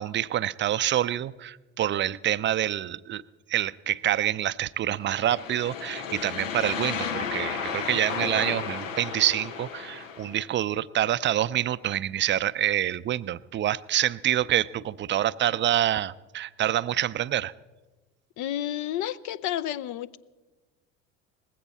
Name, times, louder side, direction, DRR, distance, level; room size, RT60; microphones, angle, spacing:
voice 1, 0.0-3.2 3.5-17.5, right 12 dB, 30° right, 17 dB, 0.5 m, -27 dB
sound 1, 5.0-10.4, left 6 dB, 85° left, 1.1 m, -33 dB
voice 2, 18.4-20.2, left 12 dB, 50° left, 16 dB, 0.6 m, -31 dB
19.5 x 15.5 x 4.2 m, 1.2 s
hypercardioid pair, 65°, 38 cm